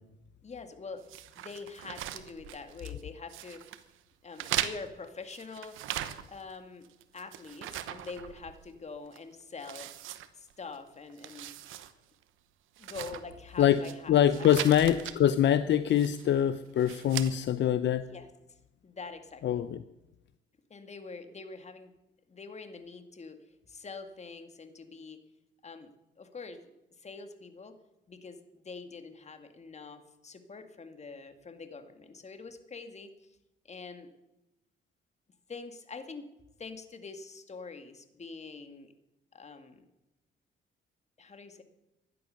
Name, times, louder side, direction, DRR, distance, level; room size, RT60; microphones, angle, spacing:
voice 1, 0.4-1.1 1.4-3.6 4.2-5.8 6.3-6.9 7.1-9.9 10.3-11.5 12.8-14.5 15.0-15.1 18.1-18.6 18.8-19.6 20.7-21.9 22.3-25.2 25.6-26.6 27.0-27.8 28.1-33.4 33.6-34.1 35.5-36.3 36.6-38.9 39.3-39.9 41.2-41.6, left 4 dB, 35° left, 8 dB, 2.1 m, -45 dB
sound 1, 1.1-3.0 3.3-3.8 4.3-6.5 6.8-8.8 9.1-9.2 9.6-10.8 11.1-11.9 12.2-12.3 12.8-13.9 14.3-15.2 15.9-16.3 16.8-17.3, right 12 dB, 90° right, 1.1 m, -39 dB
voice 2, 14.1-18.0 19.4-19.8, left 10 dB, 65° left, 12 dB, 0.7 m, -24 dB
16.0 x 11.5 x 6.4 m, 0.95 s
cardioid pair, 90°, 20 cm